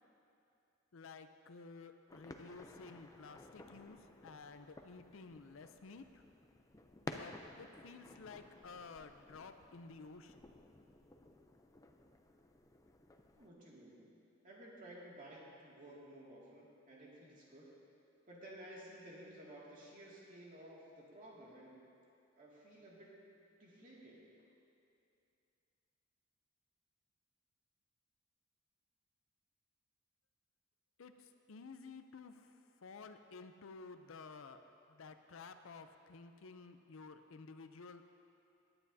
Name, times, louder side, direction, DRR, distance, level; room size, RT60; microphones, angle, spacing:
voice 1, 0.9-4.0 4.2-6.1 7.1-10.5 31.0-31.1 31.5-32.5 32.8-34.6 35.0-38.0, left 4 dB, 80° left, 9 dB, 0.5 m, -53 dB
sound 1, 2.1-13.5, left 2 dB, 15° left, 0.5 m, -54 dB
voice 2, 13.4-14.1 14.4-17.7 18.3-21.8 22.4-23.2 23.6-24.3, right 1 dB, 40° right, -5 dB, 2.2 m, -54 dB
17.5 x 9.8 x 2.7 m, 2.7 s
head